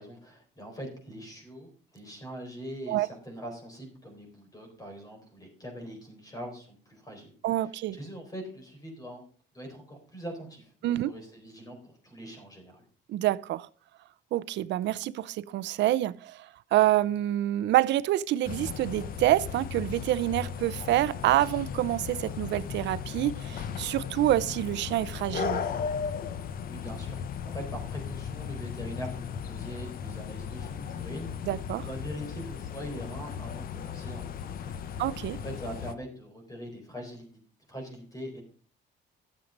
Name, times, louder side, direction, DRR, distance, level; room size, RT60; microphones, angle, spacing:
voice 1, 0.0-9.2 9.5-12.8 26.7-34.7 35.4-37.3 37.7-38.4, equal, 20° left, 4.1 m, -42 dB
voice 2, 7.4-8.0 10.8-11.1 13.1-13.7 14.3-25.6 31.5-31.9 35.0-35.4, right 14 dB, 65° right, 0.6 m, -27 dB
sound 1, 18.4-35.9, left 7 dB, 50° left, 0.8 m, -36 dB
12.5 x 7.4 x 5.2 m
cardioid pair, 160°, 19 cm